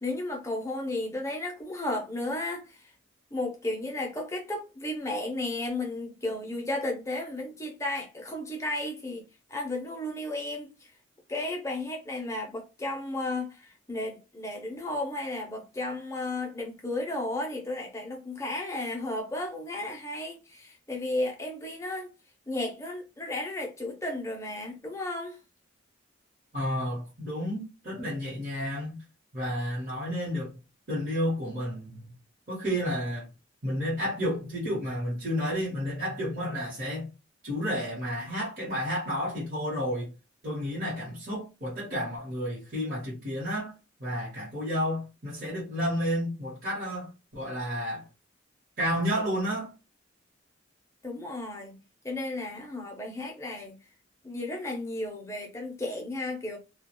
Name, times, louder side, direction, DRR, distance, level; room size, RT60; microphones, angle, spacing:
voice 1, 0.0-2.9 3.3-9.2 9.5-10.9 11.3-22.1 22.5-25.4 51.0-53.8 54.2-56.6, left 2 dB, 15° left, 0.5 m, -34 dB
voice 2, 26.5-29.0 29.3-30.5 30.9-32.0 32.5-33.3 33.6-37.1 37.4-40.1 40.4-43.7 44.0-48.0 48.8-49.7, equal, 45° right, 1.0 m, -31 dB
2.3 x 2.2 x 2.8 m
head